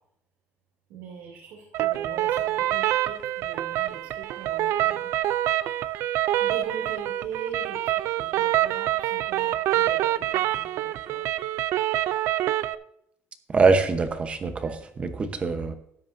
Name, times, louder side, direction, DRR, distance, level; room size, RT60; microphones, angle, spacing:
voice 1, 0.9-5.1 6.4-11.2, right 6 dB, 90° right, -2 dB, 2.8 m, -40 dB
sound 1, 1.7-12.8, right 14 dB, 65° right, 0.4 m, -26 dB
voice 2, 13.5-15.7, right 4 dB, 25° right, 9 dB, 0.9 m, -23 dB
13.0 x 10.5 x 2.7 m, 0.75 s
cardioid pair, 155°, 5 cm